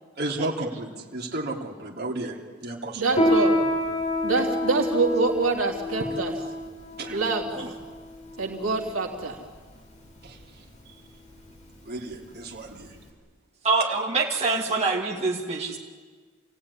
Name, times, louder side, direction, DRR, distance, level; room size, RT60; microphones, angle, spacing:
voice 1, 0.2-3.1 7.0-7.2 10.2-10.4 11.8-13.0, right 2 dB, 50° right, 0 dB, 3.3 m, -33 dB
voice 2, 2.9-3.6 4.2-6.3 7.1-7.5 8.4-9.4, right 3 dB, 70° right, 1 dB, 3.2 m, -25 dB
Piano, 3.1-13.1, left 1 dB, 35° left, 4.5 m, -28 dB
voice 3, 13.6-15.8, right 3 dB, 30° right, -3 dB, 2.5 m, -25 dB
28.0 x 17.0 x 9.9 m, 1.5 s
head